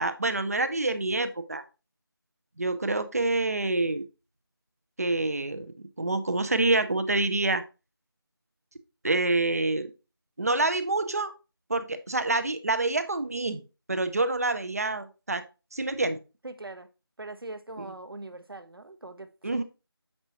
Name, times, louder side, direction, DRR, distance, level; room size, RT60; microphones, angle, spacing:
voice 1, 0.0-1.6 2.6-4.1 5.0-7.6 9.0-9.9 10.4-11.3 11.7-13.6 13.9-15.4 15.7-16.2 19.4-19.6, right 2 dB, 40° right, 0.5 m, -27 dB
voice 2, 16.4-16.9 17.2-19.6, right 2 dB, 65° right, 0.8 m, -41 dB
7.2 x 5.4 x 2.8 m
figure-of-eight pair, 170°, 13 cm